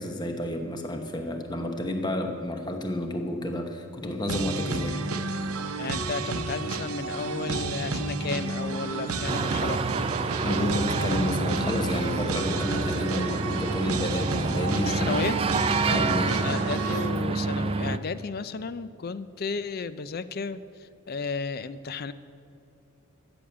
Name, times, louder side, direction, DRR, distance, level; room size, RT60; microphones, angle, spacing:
voice 1, 0.0-5.0 10.4-15.2 15.9-16.4, left 1 dB, 20° left, 4 dB, 1.0 m, -30 dB
sound 1, 4.3-17.1, right 3 dB, 80° right, 0.8 m, -31 dB
voice 2, 5.8-9.8 14.8-15.4 16.4-22.1, left 4 dB, 45° left, 14 dB, 0.4 m, -33 dB
sound 2, 9.3-18.0, right 4 dB, 25° right, 0.3 m, -29 dB
13.5 x 7.0 x 8.9 m, 2.6 s
head